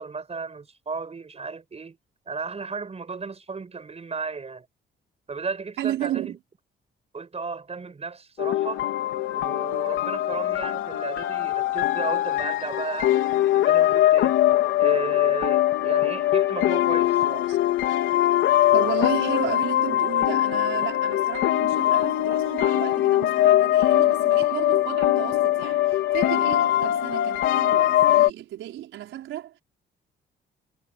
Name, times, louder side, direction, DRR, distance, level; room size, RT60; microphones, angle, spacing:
voice 1, 0.0-2.0 2.3-4.7 5.3-6.4 7.1-8.8 9.3-14.3 14.8-17.5, right 4 dB, 30° right, 5.5 m, -34 dB
voice 2, 5.8-6.4 17.5-17.6 18.7-29.6, right 13 dB, 85° right, 4.9 m, -33 dB
sound 1, 8.4-28.3, left 13 dB, 85° left, 3.8 m, -22 dB
cardioid pair, 90°, 20 cm